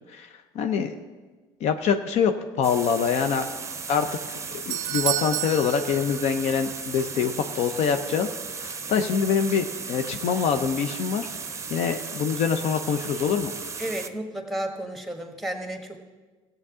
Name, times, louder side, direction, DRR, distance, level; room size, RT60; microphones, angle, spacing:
voice 1, 0.5-0.9 1.6-2.3 2.6-3.4 3.9-4.4 4.7-11.3 11.7-13.5, left 6 dB, 60° left, 8 dB, 0.7 m, -25 dB
sound 1, 2.6-14.1, right 5 dB, 25° right, 0.7 m, -36 dB
Doorbell, 4.2-6.7 7.0-7.1 7.9-8.0, right 13 dB, 65° right, 0.4 m, -31 dB
voice 2, 13.8-16.0, right 1 dB, ahead, 3 dB, 1.6 m, -32 dB
15.5 x 8.0 x 3.7 m, 1.3 s
supercardioid pair, 75°, 12 cm